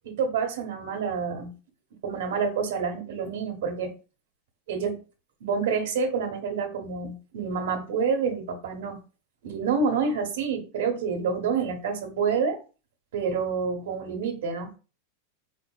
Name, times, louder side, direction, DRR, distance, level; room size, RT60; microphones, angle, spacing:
voice 1, 0.0-1.5 2.0-3.9 4.7-5.0 5.4-9.0 9.4-12.6 13.1-14.7, right 5 dB, 75° right, 0.9 m, -28 dB
4.5 x 2.5 x 2.3 m
supercardioid pair, 165°, 0 cm